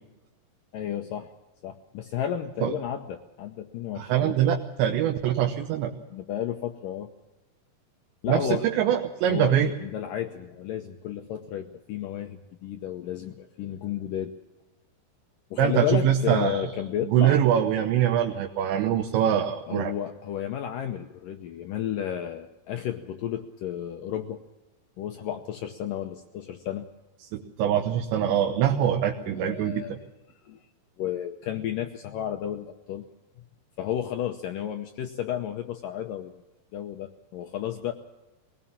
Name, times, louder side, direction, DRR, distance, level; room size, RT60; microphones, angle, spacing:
voice 1, 0.7-1.3 1.6-4.5 6.1-7.1 8.2-8.7 9.3-14.3 15.5-17.4 19.7-24.4 25.0-26.9 29.3-30.1 30.4-30.7 31.0-33.0 33.8-36.3 36.7-37.9, left 10 dB, 85° left, 5 dB, 1.9 m, -32 dB
voice 2, 4.0-5.9 8.3-9.7 15.6-16.7 17.0-19.9 27.3-29.8, right 10 dB, 80° right, 3 dB, 3.3 m, -23 dB
21.0 x 19.0 x 7.2 m, 1.1 s
omnidirectional pair, 5.1 m